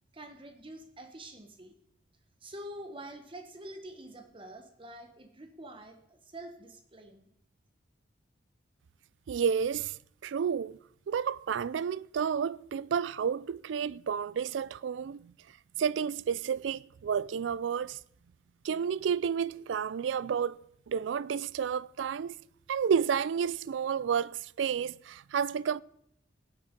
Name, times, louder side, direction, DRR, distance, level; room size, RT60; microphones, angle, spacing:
voice 1, 0.1-1.7 2.4-7.3, right 1 dB, 30° right, 1.1 m, -46 dB
voice 2, 9.3-10.0 10.2-10.8 11.1-15.3 15.8-18.0 18.6-20.6 20.9-22.3 22.7-25.8, right 7 dB, 90° right, 0.4 m, -31 dB
16.0 x 8.5 x 5.1 m
head